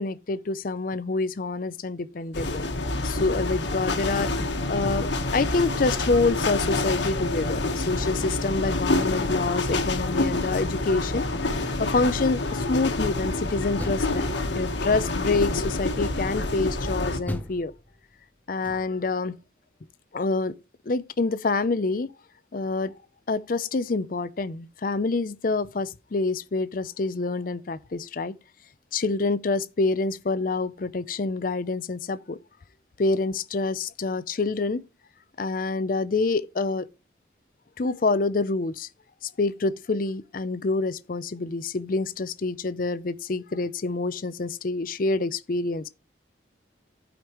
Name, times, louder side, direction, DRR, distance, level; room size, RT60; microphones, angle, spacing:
voice 1, 0.0-2.7 3.0-4.3 4.7-11.3 11.6-17.7 18.5-19.4 20.1-20.6 20.9-22.1 22.5-22.9 23.3-28.3 28.9-32.4 33.0-34.8 35.4-36.9 37.8-38.9 39.4-45.9, left 3 dB, 50° left, 0.5 m, -27 dB
sound 1, 2.3-17.2, left 2 dB, 80° left, 1.3 m, -27 dB
Door, 13.8-14.8 15.3-15.9 17.3-19.2, left 1 dB, 10° left, 0.8 m, -38 dB
15.0 x 5.1 x 3.0 m
head